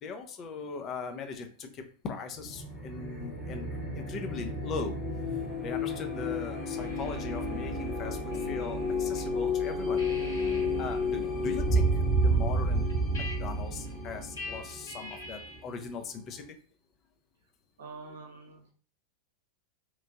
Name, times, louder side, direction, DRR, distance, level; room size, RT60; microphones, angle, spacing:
voice 1, 0.0-3.7 3.9-5.0 5.2-16.4, left 5 dB, 30° left, 6 dB, 0.4 m, -40 dB
sound 1, 2.3-15.8, equal, ahead, 0.8 m, -31 dB
sound 2, 6.8-9.3 9.6-15.7, left 3 dB, 65° left, 1.5 m, -45 dB
sound 3, 6.8-13.6, right 3 dB, 40° right, 0.5 m, -42 dB
voice 2, 17.8-18.7, right 4 dB, 65° right, 1 dB, 0.8 m, -46 dB
3.0 x 2.5 x 2.4 m, 0.42 s
figure-of-eight pair, 90°, 0 cm